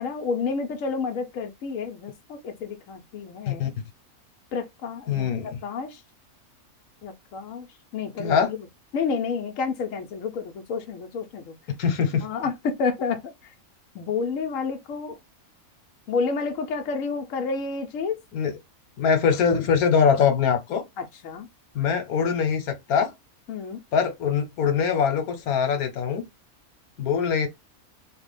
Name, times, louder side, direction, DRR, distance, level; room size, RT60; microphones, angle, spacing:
voice 1, 0.0-3.7 4.5-6.0 7.0-7.7 7.9-8.6 8.9-11.6 12.2-13.3 13.9-15.2 16.1-18.2 21.0-21.5 23.5-23.8, left 5 dB, 70° left, 1.0 m, -30 dB
voice 2, 5.1-5.6 8.2-8.5 11.8-12.3 18.3-18.5 19.0-20.8 21.7-23.1 23.9-26.2 27.0-27.5, left 6 dB, 85° left, 1.3 m, -23 dB
3.3 x 2.2 x 3.2 m
omnidirectional pair, 1.5 m